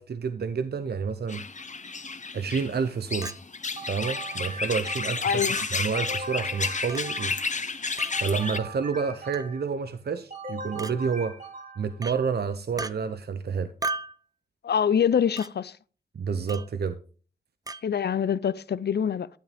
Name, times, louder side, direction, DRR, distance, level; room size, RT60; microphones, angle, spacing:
voice 1, 0.0-1.5 2.3-3.3 3.9-5.4 5.7-7.4 8.2-11.4 11.8-13.7 16.1-17.0, right 6 dB, 75° right, 0.6 m, -29 dB
sound 1, 1.3-8.6, left 4 dB, 45° left, 0.8 m, -31 dB
Chink clink, 3.2-3.4 4.3-4.4 5.6-5.7 6.9-7.1 8.0-8.2 9.3-9.6 10.8-11.0 12.0-12.2 12.8-12.9 13.8-14.2 15.4-15.5 16.5-16.7 17.7-17.8, right 3 dB, 20° right, 0.6 m, -34 dB
sound 2, 3.8-5.4 5.9-7.6 8.1-9.8 10.3-12.0, right 2 dB, 55° right, 2.5 m, -41 dB
voice 2, 5.2-5.6 14.6-15.8 17.8-19.3, left 8 dB, 80° left, 0.5 m, -25 dB
11.0 x 9.1 x 3.4 m
cardioid pair, 55°, 17 cm